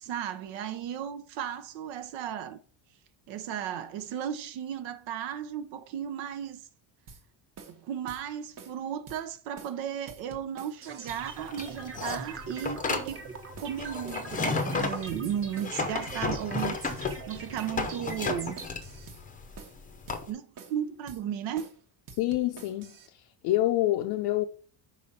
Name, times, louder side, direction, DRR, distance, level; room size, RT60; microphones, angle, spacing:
voice 1, 0.0-2.6 3.3-6.6 7.8-13.2 13.6-18.6 20.3-21.7, right 9 dB, 70° right, 0.9 m, -35 dB
sound 1, 7.1-7.2 7.6-7.8 8.1-8.2 8.6-8.8 9.1-9.2 9.6-9.8 10.1-11.2 11.6-11.8 12.1-12.2 12.6-12.8 13.1-13.2 13.6-13.8 14.1-15.2 15.6-15.8 16.1-16.2 16.6-16.8 17.1-17.2 17.6-17.8 18.1-19.2 19.6-19.8 20.1-20.2 20.6-20.8 21.1-21.2 21.6-21.8 22.1-23.1, right 5 dB, 45° right, 1.2 m, -48 dB
sound 2, 10.8-18.7, right 4 dB, 30° right, 1.2 m, -43 dB
sound 3, 11.1-20.3, left 4 dB, 20° left, 0.7 m, -33 dB
voice 2, 22.2-22.9 23.4-24.4, left 15 dB, 60° left, 0.6 m, -26 dB
5.1 x 5.0 x 5.6 m
cardioid pair, 170°, 46 cm